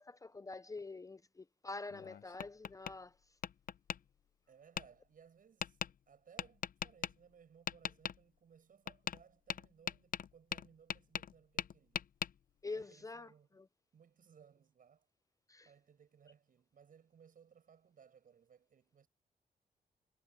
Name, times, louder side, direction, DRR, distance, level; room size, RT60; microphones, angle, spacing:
voice 1, 0.0-3.2 12.6-13.7 15.5-15.7, left 3 dB, 20° left, 0.5 m, -46 dB
Tap, 1.9-2.9 3.4-4.0 4.8-4.9 5.6-5.9 6.4-7.1 7.7-8.2 8.9-9.2 9.5-11.3 11.6-12.3, left 9 dB, 60° left, 0.7 m, -39 dB
voice 2, 4.5-5.8 6.1-12.0 12.7-13.6 13.9-15.1 15.6-19.1, right 7 dB, 60° right, 6.5 m, -63 dB
cardioid pair, 100°, 16 cm